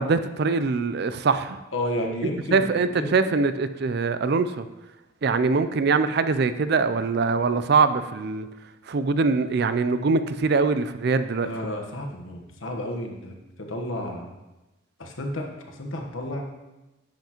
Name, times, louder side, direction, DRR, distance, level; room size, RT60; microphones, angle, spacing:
voice 1, 0.0-1.6 2.5-4.7 5.2-8.5 8.9-11.5, right 4 dB, 50° right, 11 dB, 0.4 m, -23 dB
voice 2, 1.7-3.1 11.4-13.4 13.7-14.3 15.0-16.5, left 1 dB, 75° left, 2 dB, 1.3 m, -31 dB
10.5 x 8.0 x 3.0 m, 1.0 s
head